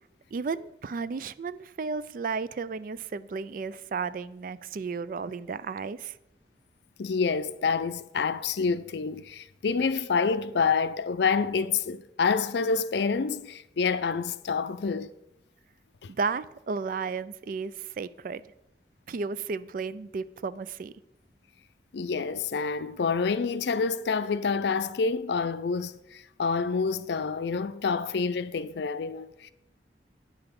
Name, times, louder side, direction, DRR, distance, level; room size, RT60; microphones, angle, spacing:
voice 1, 0.3-6.1 16.1-18.4 19.1-20.9, right 5 dB, 50° right, 0.3 m, -33 dB
voice 2, 7.0-15.1 16.0-16.1 21.9-29.5, left 5 dB, 75° left, 0.4 m, -28 dB
9.1 x 5.8 x 5.2 m
head